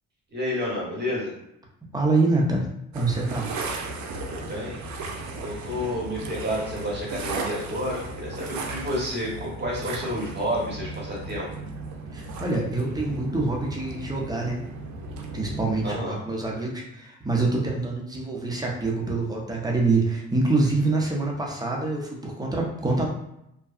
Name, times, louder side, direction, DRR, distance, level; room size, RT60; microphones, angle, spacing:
voice 1, 0.3-1.3 4.3-4.8 5.4-11.5 15.8-16.2, equal, 35° right, -4 dB, 1.1 m, -30 dB
voice 2, 1.9-2.6 2.9-3.5 12.1-14.6 15.3-23.1, right 3 dB, 15° right, -2 dB, 0.6 m, -25 dB
sound 1, 2.9-16.0, right 3 dB, 70° right, 0.5 m, -36 dB
2.7 x 2.2 x 2.4 m, 0.81 s
cardioid pair, 90°, 30 cm